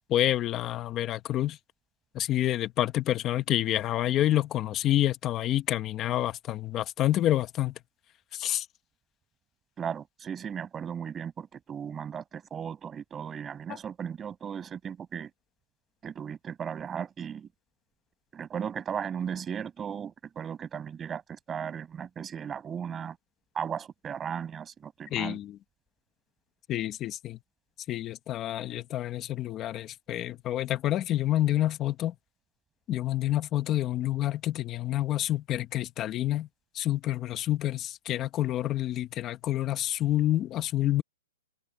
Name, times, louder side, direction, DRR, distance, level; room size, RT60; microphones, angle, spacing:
voice 1, 0.1-1.6 2.1-7.8 8.3-8.7 25.1-25.6 26.7-27.4 27.9-32.1 32.9-36.5 36.7-41.0, left 13 dB, 20° left, 1.3 m, -28 dB
voice 2, 9.8-15.3 16.0-17.5 18.3-23.2 23.5-25.4, right 7 dB, 10° right, 6.7 m, -36 dB
hypercardioid pair, 165°, 0 cm